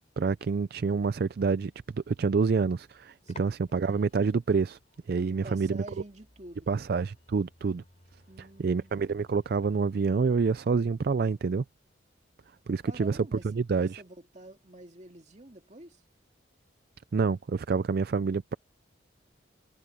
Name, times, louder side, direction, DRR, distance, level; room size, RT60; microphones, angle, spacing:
voice 1, 0.2-1.7 2.1-4.8 5.1-5.8 6.7-7.8 8.4-11.6 12.7-13.2 13.4-14.0 17.1-18.5, right 5 dB, 50° right, 0.4 m, -27 dB
sound 1, 2.9-10.5, left 3 dB, 35° left, 6.2 m, -57 dB
voice 2, 3.2-3.6 5.3-6.7 8.3-8.9 12.9-16.0, right 1 dB, 35° right, 2.2 m, -48 dB
head